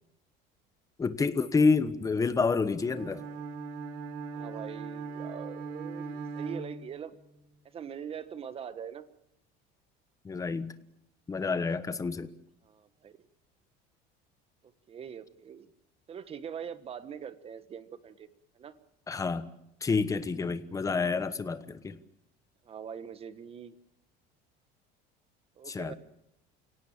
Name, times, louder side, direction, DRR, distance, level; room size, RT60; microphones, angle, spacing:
voice 1, 1.0-3.2 10.2-10.7 11.3-12.3 19.1-19.5 19.8-22.0 25.7-25.9, left 4 dB, 15° left, 12 dB, 1.2 m, -28 dB
Bowed string instrument, 2.8-7.4, right 4 dB, 80° right, 3.4 m, -39 dB
voice 2, 4.3-7.1 7.6-9.1 12.6-13.2 14.6-15.7 16.1-18.8 22.6-23.7 25.6-25.9, right 8 dB, 30° right, 12 dB, 1.4 m, -43 dB
29.0 x 17.5 x 7.4 m, 0.80 s
cardioid pair, 155°, 21 cm